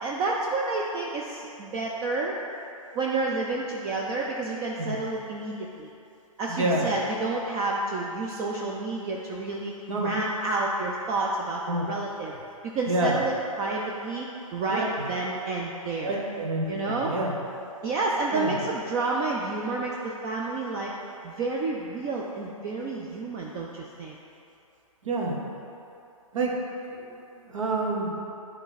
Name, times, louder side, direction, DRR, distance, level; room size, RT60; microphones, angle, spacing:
voice 1, 0.0-2.4 2.9-5.9 6.4-12.3 12.7-14.3 14.5-16.2 16.7-17.1 17.8-20.9 21.2-24.2, right 3 dB, 20° right, -2 dB, 0.3 m, -30 dB
voice 2, 6.5-6.9 9.9-10.1 11.7-11.8 12.9-13.1 14.7-14.9 16.0-17.3 18.3-18.5 25.1-25.4 26.3-26.5 27.5-28.1, right 2 dB, 60° right, -1 dB, 1.2 m, -27 dB
8.9 x 3.2 x 4.0 m, 2.8 s
figure-of-eight pair, 130°, 18 cm